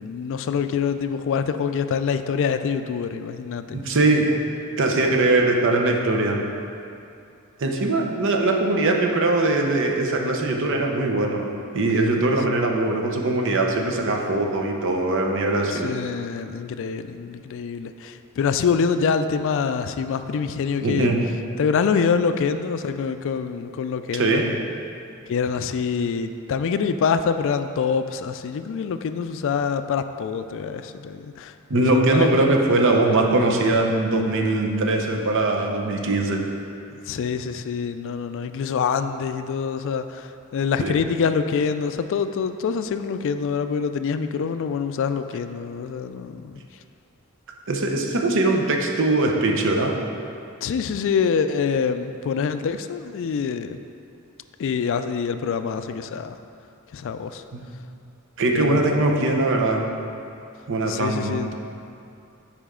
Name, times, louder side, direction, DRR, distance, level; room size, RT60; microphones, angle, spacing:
voice 1, 0.0-4.0 15.7-21.1 21.6-24.6 25.3-31.5 31.9-32.5 36.9-46.6 50.6-53.8 54.6-56.4 56.9-57.4 58.5-59.3 60.9-61.5, left 6 dB, 60° left, 9 dB, 0.3 m, -25 dB
voice 2, 3.7-4.3 4.8-6.4 7.6-11.5 11.7-15.9 20.8-21.2 24.1-24.4 31.7-36.4 40.8-41.0 47.7-50.0 57.5-57.6 58.4-59.9 60.7-61.5, right 2 dB, 60° right, 1 dB, 0.7 m, -21 dB
8.5 x 5.0 x 3.7 m, 2.6 s
head